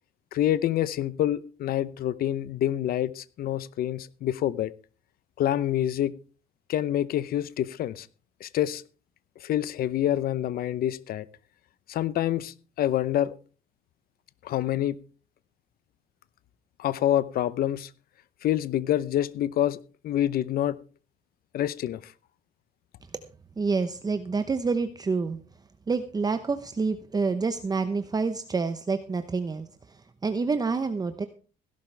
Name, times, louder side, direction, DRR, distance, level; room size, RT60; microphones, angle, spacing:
voice 1, 0.3-4.7 5.4-6.1 6.7-8.1 8.4-8.8 9.4-11.3 11.9-13.3 14.4-15.0 16.8-17.9 18.4-19.8 20.0-20.8 21.5-22.1, left 12 dB, 60° left, 0.8 m, -27 dB
voice 2, 23.6-25.4 25.9-29.7 30.2-31.3, right 4 dB, 20° right, 0.9 m, -27 dB
16.5 x 12.0 x 3.4 m
cardioid pair, 110°, 17 cm